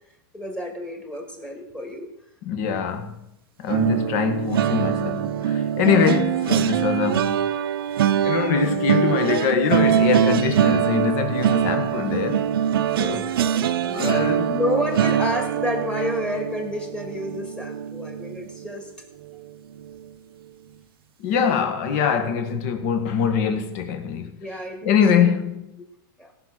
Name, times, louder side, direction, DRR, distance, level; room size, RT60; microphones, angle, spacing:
voice 1, 0.3-2.1 13.0-14.1 14.5-18.9 24.4-25.2 26.2-26.3, left 1 dB, 5° left, 2.2 m, -30 dB
voice 2, 2.4-3.1 3.6-7.4 8.2-12.5 13.0-13.2 13.9-14.5 21.2-24.4 24.8-25.7, left 7 dB, 45° left, 1.8 m, -23 dB
sound 1, 3.7-18.8 19.2-19.5 19.8-20.0, right 9 dB, 85° right, 0.8 m, -23 dB
17.0 x 6.3 x 6.2 m
supercardioid pair, 160°, 12 cm